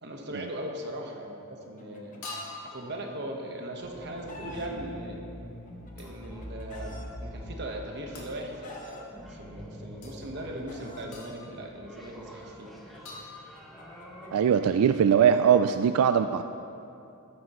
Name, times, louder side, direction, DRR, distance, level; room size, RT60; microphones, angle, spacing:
voice 1, 0.0-2.2 2.6-5.3 6.0-12.7, right 1 dB, 50° right, 1 dB, 1.3 m, -39 dB
sound 1, 0.9-1.1 2.2-2.8 6.0-6.2 8.1-8.4 10.0-10.1 11.1-11.6 13.0-13.8, left 3 dB, 70° left, 2.3 m, -44 dB
Chicken rooster, 1.4-2.6 3.6-4.7 5.7-7.1 8.0-9.0 10.0-11.1 12.2-15.5, left 2 dB, 35° left, 1.1 m, -48 dB
sound 2, 2.7-14.4, equal, ahead, 1.3 m, -45 dB
voice 2, 14.3-16.4, right 8 dB, 90° right, 10 dB, 0.3 m, -21 dB
14.5 x 11.5 x 3.1 m, 2.7 s
head